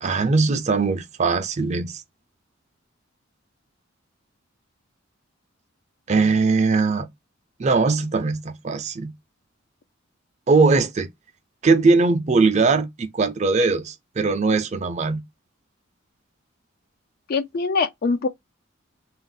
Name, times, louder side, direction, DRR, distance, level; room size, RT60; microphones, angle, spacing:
voice 1, 0.0-2.0 6.1-7.1 7.6-9.1 10.5-11.1 11.6-15.2, right 4 dB, 35° right, 0.4 m, -20 dB
voice 2, 17.3-18.3, left 4 dB, 50° left, 0.4 m, -23 dB
2.4 x 2.0 x 3.7 m
head